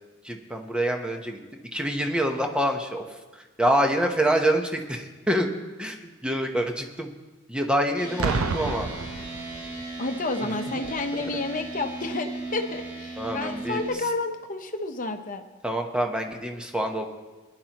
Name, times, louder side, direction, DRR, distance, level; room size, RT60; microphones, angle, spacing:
voice 1, 0.2-1.4 1.7-5.5 5.8-7.1 7.5-8.9 10.4-10.5 13.2-14.1 15.6-17.1, right 1 dB, 5° right, 3 dB, 0.9 m, -26 dB
sound 1, 8.0-13.9, right 2 dB, 20° right, 3.5 m, -37 dB
Boom, 8.2-10.0 10.8-11.1, right 4 dB, 80° right, 0.7 m, -29 dB
voice 2, 10.0-15.4, left 3 dB, 40° left, 6 dB, 0.9 m, -30 dB
20.5 x 10.5 x 3.0 m, 1.2 s
head